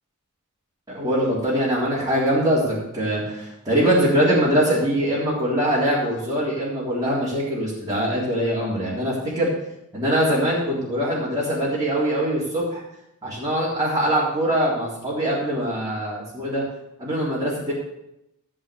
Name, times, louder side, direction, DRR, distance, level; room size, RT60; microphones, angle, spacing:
voice 1, 0.9-9.5 9.9-12.8 13.2-16.6 17.0-17.7, equal, 15° right, -8 dB, 3.4 m, -23 dB
13.5 x 5.0 x 8.2 m, 0.85 s
head